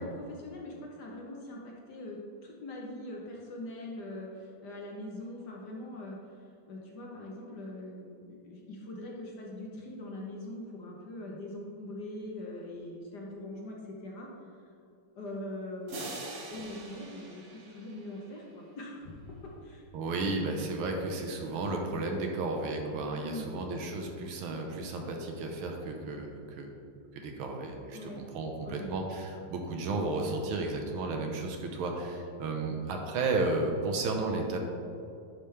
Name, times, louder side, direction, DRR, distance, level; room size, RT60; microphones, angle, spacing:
voice 1, 0.0-6.2 6.7-14.3 15.1-16.2 16.5-19.8 23.1-23.5 27.9-28.2 28.6-28.9, left 1 dB, 60° left, -2 dB, 1.3 m, -42 dB
sound 1, 15.9-18.6, right 2 dB, 60° right, 0.7 m, -44 dB
voice 2, 19.9-26.7 27.1-34.6, right 3 dB, 75° right, 2 dB, 1.6 m, -33 dB
10.0 x 5.2 x 3.2 m, 2.6 s
omnidirectional pair, 2.4 m